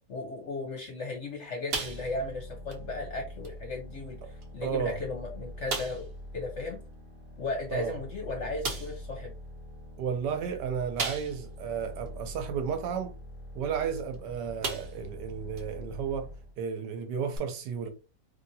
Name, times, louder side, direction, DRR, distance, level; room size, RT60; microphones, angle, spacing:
voice 1, 0.1-6.8 7.4-9.3, left 3 dB, 55° left, 0.9 m, -36 dB
sound 1, 1.7-2.4 2.7-2.9 3.4-3.5 4.4-4.5 4.9-5.0 5.7-6.1 7.8-7.9 8.6-9.0 11.0-11.6 12.1-12.2 14.0-14.2 14.6-15.1 15.6-15.7 17.3-17.4, right 4 dB, 55° right, 0.6 m, -35 dB
sound 2, 1.8-16.6, left 1 dB, 30° right, 1.1 m, -44 dB
voice 2, 4.6-5.0 7.7-8.0 10.0-13.1 13.5-16.3 16.6-17.9, right 7 dB, 75° right, 1.2 m, -33 dB
3.3 x 2.6 x 2.6 m
omnidirectional pair, 1.9 m